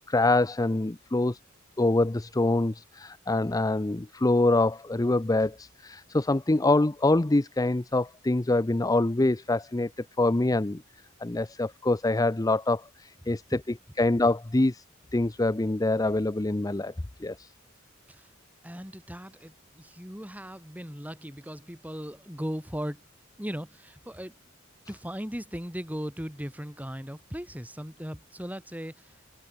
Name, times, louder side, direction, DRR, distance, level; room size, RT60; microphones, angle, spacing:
voice 1, 0.1-1.4 1.8-10.8 11.2-13.4 14.0-14.8 15.1-16.9 17.2-17.5, left 2 dB, 15° left, 0.5 m, -25 dB
voice 2, 18.6-23.0 23.4-24.3 24.9-29.2, equal, 10° right, 5.4 m, -38 dB
open air
head